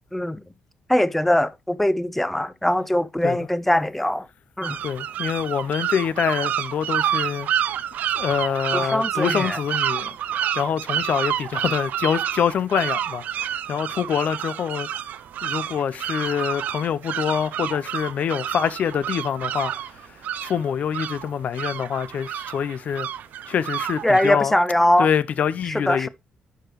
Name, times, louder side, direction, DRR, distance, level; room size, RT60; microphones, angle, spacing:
voice 1, 0.1-0.4 0.9-4.3 4.6-4.8 8.7-9.6 24.0-25.1 25.7-26.1, left 1 dB, 5° left, 0.6 m, -21 dB
sound 1, 4.6-24.3, right 10 dB, 75° right, 0.4 m, -29 dB
voice 2, 4.8-7.5 8.1-14.9 15.4-19.7 20.0-20.2 20.4-23.1 23.5-24.5 25.0-26.1, left 8 dB, 60° left, 0.5 m, -25 dB
11.0 x 4.9 x 3.0 m
cardioid pair, 90°, 3 cm